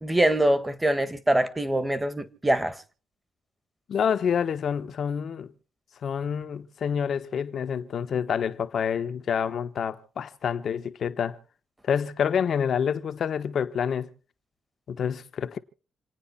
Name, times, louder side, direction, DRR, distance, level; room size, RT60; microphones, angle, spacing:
voice 1, 0.0-2.8, right 1 dB, 10° right, 1.5 m, -24 dB
voice 2, 3.9-5.5 6.0-11.4 11.8-14.1 14.9-15.6, left 7 dB, 60° left, 1.2 m, -27 dB
28.5 x 9.5 x 4.3 m
cardioid pair, 90°, 0 cm